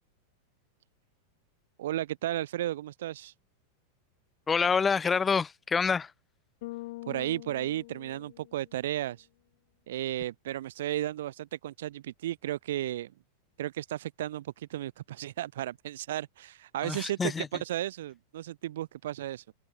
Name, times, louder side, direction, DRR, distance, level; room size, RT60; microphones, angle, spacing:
voice 1, 1.8-3.3 7.1-9.3 9.9-13.1 13.6-19.5, right 13 dB, 60° right, 0.3 m, -34 dB
voice 2, 4.5-6.1 16.8-17.5, left 5 dB, 15° left, 0.8 m, -27 dB
Bass guitar, 6.6-8.9, left 19 dB, 50° left, 1.3 m, -44 dB
figure-of-eight pair, 90°, 0 cm